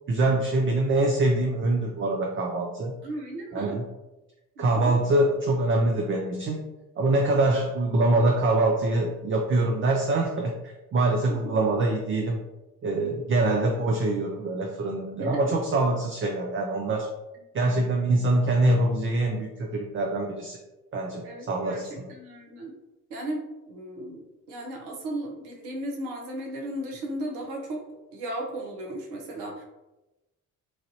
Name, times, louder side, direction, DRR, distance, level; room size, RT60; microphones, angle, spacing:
voice 1, 0.1-2.9 3.5-3.8 4.6-6.6 7.0-10.5 10.9-12.4 12.8-17.1 17.5-20.6 20.9-22.1, right 2 dB, 30° right, 1 dB, 0.5 m, -24 dB
voice 2, 3.0-3.8 4.6-5.0 11.3-11.4 15.2-15.5 21.2-22.8 23.1-24.2 24.5-27.8 28.1-29.6, right 1 dB, 70° right, 1 dB, 0.9 m, -35 dB
3.1 x 2.5 x 2.7 m, 1.0 s
hypercardioid pair, 50°, 41 cm